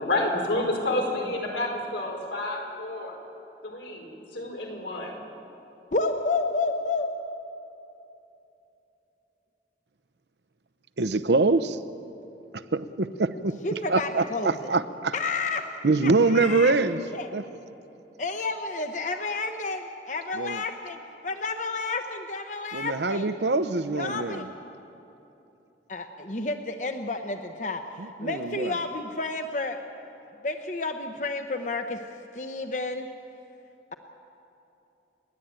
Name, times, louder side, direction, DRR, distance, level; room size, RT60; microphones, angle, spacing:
voice 1, 0.0-3.2 3.6-5.2, left 2 dB, 90° left, 0 dB, 4.7 m, -29 dB
voice 2, 5.9-7.1 13.6-14.7 15.1-15.7 16.0-16.7 17.1-17.3 18.2-23.3 23.9-24.5 25.9-29.8 30.4-32.0 32.3-33.1, left 3 dB, 45° left, 6 dB, 0.8 m, -30 dB
voice 3, 11.0-11.8 12.7-13.5 13.9-15.1 15.8-17.0 17.3-17.4 20.4-20.6 22.7-24.4 28.0-28.7, right 3 dB, 75° right, 13 dB, 0.8 m, -24 dB
30.0 x 11.5 x 9.0 m, 3.0 s
head